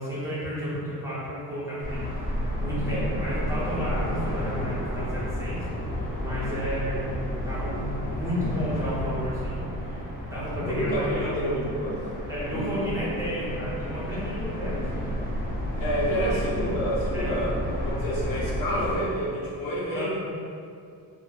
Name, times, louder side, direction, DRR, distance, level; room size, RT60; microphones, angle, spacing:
voice 1, 0.0-2.1 2.6-5.6 6.2-9.6 10.2-11.5 12.3-15.0 16.3-16.4 17.1-17.3 19.9-20.1, equal, 10° right, -10 dB, 0.8 m, -32 dB
sound 1, 1.8-18.9, equal, 25° left, 0.5 m, -31 dB
voice 2, 10.6-12.0 12.5-12.7 15.8-20.1, equal, 65° left, -6 dB, 0.8 m, -29 dB
3.0 x 2.0 x 2.3 m, 2.4 s
cardioid pair, 120°, 36 cm